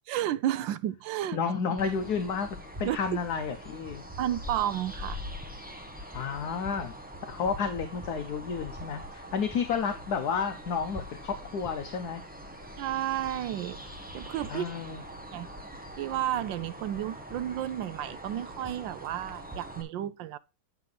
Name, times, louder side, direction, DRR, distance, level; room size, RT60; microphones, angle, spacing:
voice 1, 0.1-1.4 2.8-3.2 4.2-5.2 12.8-13.8 14.1-14.7 15.3-15.5 16.0-20.4, right 12 dB, 80° right, 1.3 m, -32 dB
voice 2, 1.3-2.5 2.8-4.0 6.1-6.9 7.3-12.2 14.5-15.0, left 6 dB, 65° left, 1.2 m, -31 dB
sound 1, 1.8-19.8, equal, 10° right, 0.5 m, -43 dB
9.1 x 5.8 x 3.8 m
omnidirectional pair, 2.1 m